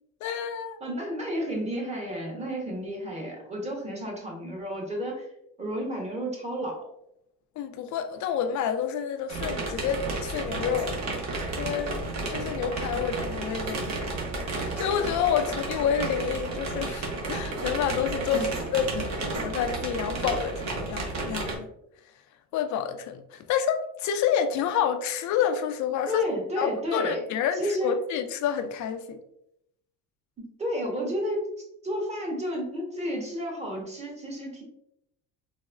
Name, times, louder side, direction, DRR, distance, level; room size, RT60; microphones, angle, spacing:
voice 1, 0.2-0.8 7.6-11.0 11.6-12.0 12.3-14.0 14.6-18.5 18.7-21.7 22.5-26.2 26.6-29.2, left 8 dB, 55° left, 0.5 m, -28 dB
voice 2, 0.8-5.3 5.6-6.9 18.3-18.5 26.1-27.2 27.6-27.9 30.4-31.4 31.8-34.6, equal, 20° right, 1.1 m, -31 dB
sound 1, 9.3-21.6, right 2 dB, 50° right, 1.0 m, -32 dB
4.0 x 2.1 x 2.4 m
cardioid pair, 105°, 36 cm